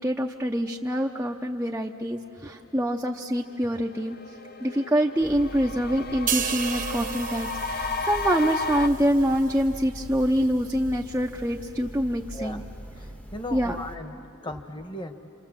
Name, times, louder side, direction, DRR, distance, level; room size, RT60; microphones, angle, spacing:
voice 1, 0.0-4.2 4.6-12.6 13.5-13.8, equal, 10° right, 0 dB, 0.7 m, -25 dB
sound 1, 3.1-3.2 3.5-8.9, left 3 dB, 50° left, 1.0 m, -33 dB
sound 2, 5.2-14.0, equal, 5° left, 1.0 m, -41 dB
sound 3, 6.3-9.8 10.2-10.4, right 9 dB, 40° right, 1.0 m, -34 dB
voice 2, 13.0-15.1, left 1 dB, 25° left, 6 dB, 1.4 m, -37 dB
28.5 x 28.0 x 7.5 m, 2.6 s
head